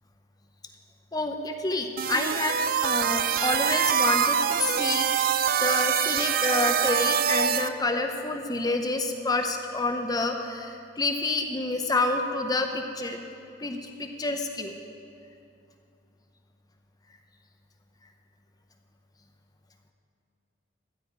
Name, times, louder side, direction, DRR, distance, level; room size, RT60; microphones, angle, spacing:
voice 1, 1.1-5.1 5.6-13.2 13.6-14.8, left 2 dB, 20° left, 4 dB, 0.7 m, -28 dB
sound 1, 2.0-7.7, right 8 dB, 50° right, 0.3 m, -24 dB
13.5 x 4.9 x 8.6 m, 2.6 s
head